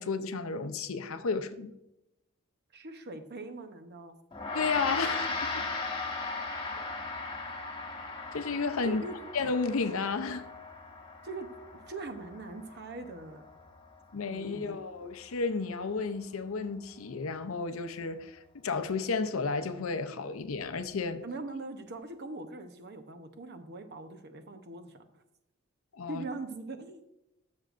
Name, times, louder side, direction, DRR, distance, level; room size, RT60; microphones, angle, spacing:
voice 1, 0.0-1.7 4.5-5.7 8.0-9.0 9.3-10.4 14.1-21.2 25.9-26.2, left 4 dB, 75° left, 0.6 m, -32 dB
voice 2, 2.7-4.1 8.8-9.2 11.2-11.5 11.7-13.5 14.3-14.7 21.2-25.2 26.1-27.0, right 3 dB, 50° right, 0.8 m, -42 dB
Gong, 4.3-13.9, left 3 dB, 25° left, 1.3 m, -37 dB
13.0 x 6.3 x 2.5 m
head